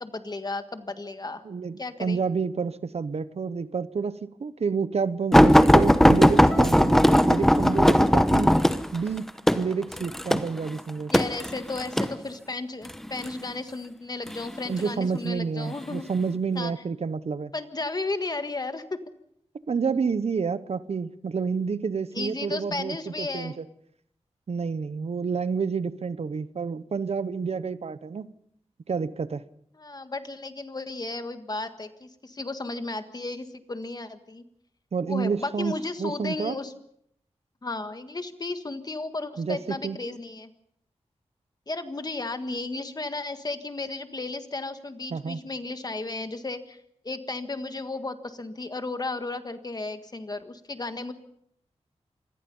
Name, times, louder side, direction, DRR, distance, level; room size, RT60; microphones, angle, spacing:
voice 1, 0.0-1.4 1.8-2.2 11.1-16.0 16.5-16.7 17.5-19.0 22.1-23.6 29.8-34.4 35.0-36.7 37.6-40.5 41.7-46.8 47.0-51.1, left 3 dB, 35° left, 9 dB, 1.7 m, -34 dB
voice 2, 1.4-8.6 8.9-9.3 9.5-11.1 14.6-17.5 19.7-23.6 24.5-28.3 28.9-29.4 34.9-36.5 39.4-40.0 45.1-45.4, right 5 dB, 65° right, 14 dB, 1.0 m, -29 dB
sound 1, 5.3-12.1 12.9-13.3 14.3-14.9 15.7-15.8 16.2-16.3, equal, 5° left, 1.0 m, -18 dB
27.0 x 21.5 x 5.5 m, 0.71 s
wide cardioid pair, 115°, 11 cm